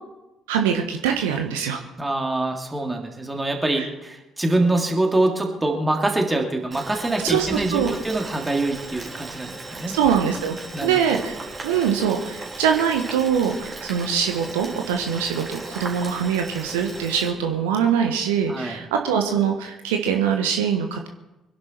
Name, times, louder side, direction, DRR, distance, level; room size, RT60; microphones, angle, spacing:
voice 1, 0.5-1.8 3.7-3.9 7.2-7.9 9.9-10.6 10.8-21.1, right 7 dB, 70° right, 4 dB, 1.3 m, -23 dB
voice 2, 2.0-10.0 10.7-11.0 18.5-18.8, right 2 dB, 15° right, 2 dB, 3.0 m, -24 dB
Boiling, 6.7-17.3, right 3 dB, 30° right, 3.9 m, -37 dB
24.5 x 11.5 x 4.6 m, 1.0 s
figure-of-eight pair, 45°, 0 cm